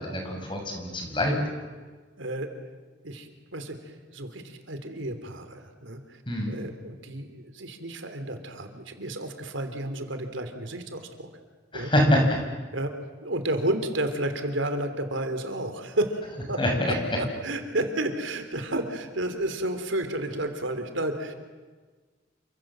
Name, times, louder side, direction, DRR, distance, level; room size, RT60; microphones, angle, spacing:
voice 1, 0.0-1.3 6.3-6.5 11.7-12.4 16.6-16.9, left 1 dB, 25° left, 2 dB, 6.4 m, -24 dB
voice 2, 2.2-2.5 3.0-6.2 6.5-11.3 11.7-11.9 12.7-12.9 13.2-16.2 16.5-16.6 16.9-21.3, right 1 dB, 90° right, 7 dB, 3.3 m, -31 dB
29.0 x 25.5 x 7.6 m, 1.4 s
head